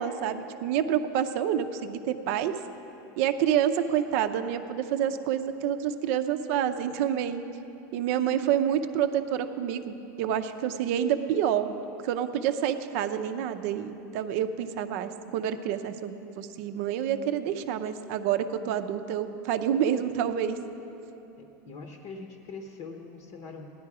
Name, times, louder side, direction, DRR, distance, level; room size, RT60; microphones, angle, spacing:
voice 1, 0.0-2.5 3.2-7.4 7.9-11.7 12.0-20.6, right 9 dB, 50° right, 9 dB, 0.6 m, -28 dB
voice 2, 21.4-23.7, left 4 dB, 40° left, 3 dB, 0.9 m, -42 dB
16.5 x 11.0 x 4.8 m, 3.0 s
supercardioid pair, 170°, 10 cm